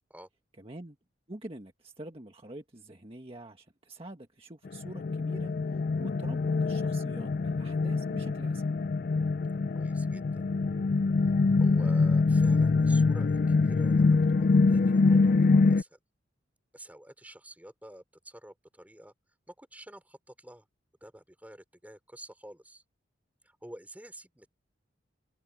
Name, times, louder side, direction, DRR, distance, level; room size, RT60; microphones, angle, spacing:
voice 1, 0.6-1.0 1.3-5.5 6.0-8.7, right 1 dB, 30° right, 1.6 m, -46 dB
sound 1, 4.7-15.8, left 3 dB, 50° left, 0.4 m, -25 dB
voice 2, 9.7-10.4 11.6-16.0 16.7-19.1 19.5-20.7 21.0-22.8 23.4-24.5, right 1 dB, 10° right, 4.0 m, -49 dB
head